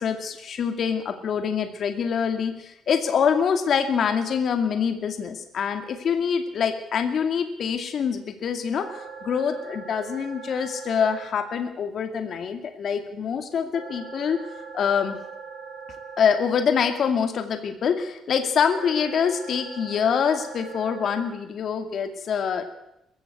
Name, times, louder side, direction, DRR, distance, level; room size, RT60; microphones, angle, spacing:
voice 1, 0.0-14.4 14.7-15.2 16.2-22.6, left 7 dB, 55° left, 7 dB, 2.4 m, -25 dB
sound 1, 8.7-11.2 13.7-16.2 18.7-21.2, right 5 dB, 60° right, 7.8 m, -40 dB
21.0 x 15.5 x 8.3 m, 0.82 s
cardioid pair, 125°, 0 cm